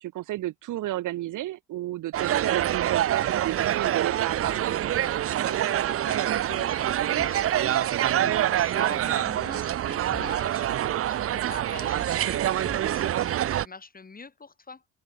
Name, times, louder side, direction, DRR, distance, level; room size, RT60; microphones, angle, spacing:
voice 1, 0.0-4.5 8.1-8.5, right 15 dB, 60° right, 1.4 m, -32 dB
sound 1, 2.1-13.7, right 11 dB, 40° right, 0.7 m, -26 dB
sound 2, 4.4-4.8 7.2-7.6 10.1-10.5 12.7-13.0, left 8 dB, 45° left, 7.1 m, -45 dB
voice 2, 5.2-14.9, left 4 dB, 25° left, 2.2 m, -45 dB
hypercardioid pair, 50°, 35 cm